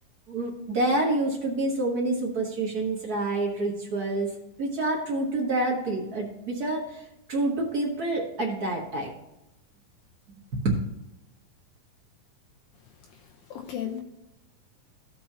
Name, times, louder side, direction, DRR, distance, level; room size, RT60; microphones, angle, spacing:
voice 1, 0.3-4.3 4.6-9.1 10.5-10.8, right 2 dB, 70° right, -2 dB, 0.9 m, -27 dB
voice 2, 13.2-14.0, left 9 dB, 80° left, 1 dB, 2.5 m, -35 dB
16.0 x 5.4 x 2.8 m, 0.92 s
omnidirectional pair, 4.0 m